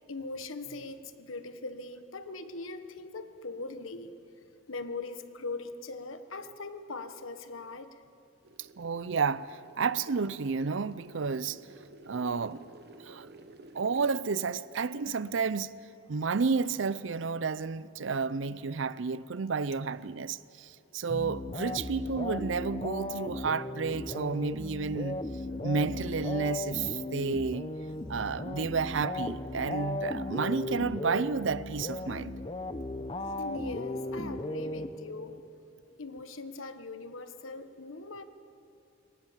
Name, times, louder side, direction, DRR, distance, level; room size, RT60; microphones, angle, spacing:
voice 1, 0.1-4.2 4.7-7.9 33.4-35.4 36.0-38.2, left 3 dB, 85° left, 1.2 m, -40 dB
sound 1, 8.4-14.2, right 2 dB, 55° right, 1.1 m, -52 dB
voice 2, 8.8-11.6 12.0-12.6 13.0-13.3 13.7-15.7 16.1-25.2 25.6-27.7 28.1-32.3, right 5 dB, 70° right, 0.5 m, -31 dB
sound 2, 21.1-35.4, left 2 dB, 25° left, 0.7 m, -36 dB
24.0 x 18.5 x 7.4 m
head